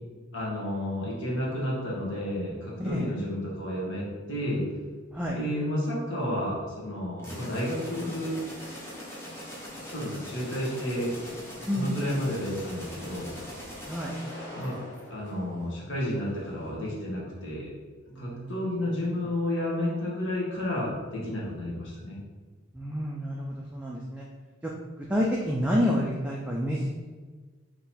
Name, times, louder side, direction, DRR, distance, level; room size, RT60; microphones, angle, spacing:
voice 1, 0.3-4.6 5.3-8.4 9.4-9.5 9.8-11.1 11.7-13.3 14.5-14.7 15.1-17.7 18.1-22.2, left 1 dB, 60° left, -5 dB, 1.4 m, -31 dB
voice 2, 2.8-3.2 5.1-5.4 11.7-11.9 13.9-14.1 18.1-18.5 18.8-18.9 22.7-24.3 24.6-24.7 25.0-27.0, equal, 5° right, -3 dB, 0.3 m, -29 dB
sound 1, 7.2-15.8, equal, 10° left, 0.9 m, -42 dB
3.8 x 3.0 x 4.2 m, 1.4 s
head